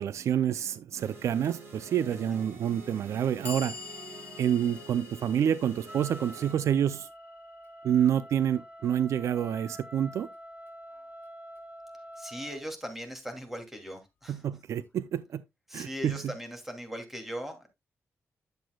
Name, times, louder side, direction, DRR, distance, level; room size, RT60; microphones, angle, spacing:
voice 1, 0.0-3.8 4.4-7.1 7.8-10.3 14.3-15.4 15.7-16.3, right 9 dB, 70° right, 0.4 m, -28 dB
sound 1, 1.0-6.5, right 3 dB, 50° right, 5.1 m, -47 dB
Clock, 1.4-1.6 2.5-2.6 3.1-9.2, left 5 dB, 35° left, 2.8 m, -47 dB
Wind instrument woodwind instrument, 5.8-12.6, equal, 25° right, 1.5 m, -47 dB
voice 2, 12.2-14.4 15.7-17.7, equal, 5° right, 2.5 m, -39 dB
10.5 x 7.7 x 2.3 m
cardioid pair, 100°, 5 cm